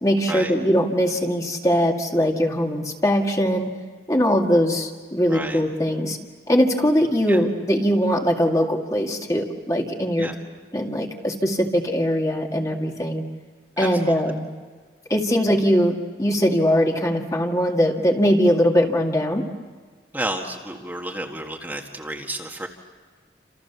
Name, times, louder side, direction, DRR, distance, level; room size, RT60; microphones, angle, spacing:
voice 1, 0.0-3.7 4.1-6.2 6.5-10.3 10.7-13.2 13.8-14.5 15.1-19.4, equal, 20° left, 2 dB, 2.1 m, -21 dB
voice 2, 5.3-5.6 7.3-7.4 10.2-10.3 13.8-14.1 20.1-22.7, right 1 dB, 10° right, 1 dB, 1.8 m, -31 dB
29.5 x 27.5 x 7.1 m, 1.5 s
head